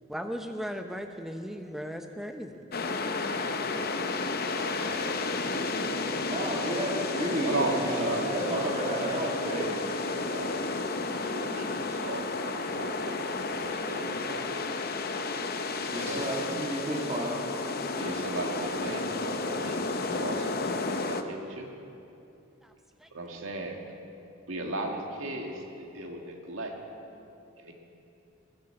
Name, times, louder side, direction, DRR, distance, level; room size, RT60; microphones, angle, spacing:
voice 1, 0.1-2.6 3.0-3.3 4.1-4.6 22.6-22.7 23.0-23.1, equal, ahead, 5 dB, 0.7 m, -38 dB
sound 1, 2.7-21.2, left 3 dB, 50° left, 0.7 m, -32 dB
voice 2, 4.6-6.6 7.4-8.8 9.1-9.4 10.1-10.7 11.0-14.5 15.9-16.3 17.9-21.7 23.1-23.8 24.5-26.7 27.6-27.7, right 2 dB, 85° right, 1 dB, 1.9 m, -37 dB
voice 3, 6.3-9.7 15.9-17.4, right 1 dB, 25° right, -6 dB, 1.9 m, -32 dB
19.0 x 7.8 x 7.7 m, 2.8 s
head